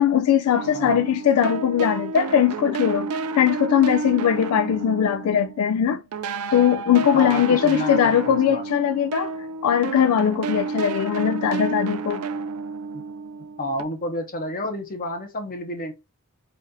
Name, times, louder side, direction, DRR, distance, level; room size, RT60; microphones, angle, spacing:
voice 1, 0.0-6.0 6.5-9.3 9.6-12.2, left 9 dB, 75° left, 0.3 m, -20 dB
sound 1, 0.5-5.8 6.1-13.8, right 4 dB, 85° right, 0.4 m, -31 dB
voice 2, 0.7-1.1 7.1-8.6 12.9-13.0 13.6-15.9, left 1 dB, 40° left, 1.0 m, -30 dB
4.2 x 2.6 x 4.0 m
head